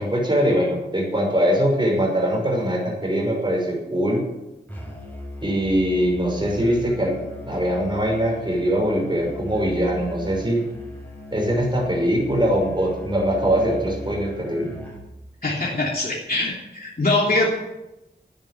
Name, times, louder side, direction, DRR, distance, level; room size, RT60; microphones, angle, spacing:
voice 1, 0.0-4.2 5.4-7.2 7.4-10.6 11.3-14.8, equal, 25° right, -1 dB, 5.8 m, -22 dB
Musical instrument, 4.7-15.1, left 1 dB, 10° left, 6.6 m, -38 dB
voice 2, 15.4-17.5, left 2 dB, 55° left, -4 dB, 3.0 m, -23 dB
12.0 x 9.9 x 8.3 m, 0.97 s
wide cardioid pair, 60°, 18 cm